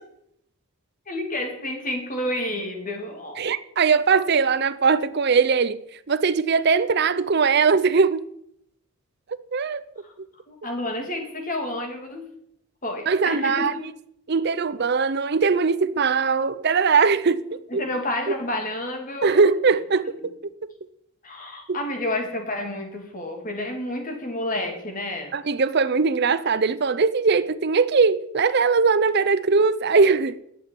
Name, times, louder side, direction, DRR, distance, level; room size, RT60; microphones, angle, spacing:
voice 1, 1.1-3.5 10.0-10.1 10.5-12.3 12.8-13.8 17.7-19.4 20.2-20.3 21.2-25.4, left 1 dB, 35° left, 2.7 m, -30 dB
voice 2, 3.4-5.8 6.1-8.2 9.5-9.8 13.1-13.8 14.3-17.8 19.2-20.0 21.7-21.8 25.3-30.4, right 5 dB, 45° right, 0.5 m, -20 dB
11.0 x 8.1 x 9.1 m
head